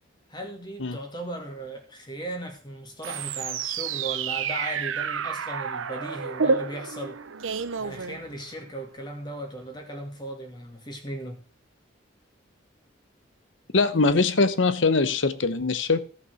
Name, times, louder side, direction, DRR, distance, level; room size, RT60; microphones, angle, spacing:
voice 1, 0.3-7.2 7.8-11.4, right 1 dB, 20° left, 2.3 m, -37 dB
sound 1, 3.0-8.7, right 5 dB, 80° right, 0.8 m, -30 dB
voice 2, 13.7-16.0, left 3 dB, 70° left, 0.9 m, -22 dB
14.0 x 5.9 x 6.4 m
head